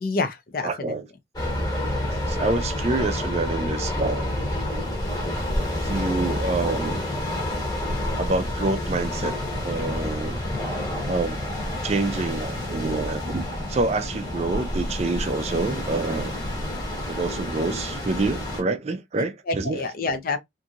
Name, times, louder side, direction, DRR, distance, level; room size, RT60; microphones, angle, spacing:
voice 1, 0.0-1.0 19.5-20.4, left 3 dB, 50° left, 0.5 m, -27 dB
voice 2, 0.6-1.1 2.1-4.3 5.8-7.0 8.2-9.3 9.6-10.4 11.1-11.4 11.8-16.3 17.1-19.9, right 3 dB, 35° right, 0.4 m, -27 dB
sound 1, 1.4-18.6, left 1 dB, 20° left, 1.0 m, -29 dB
2.8 x 2.6 x 2.4 m
head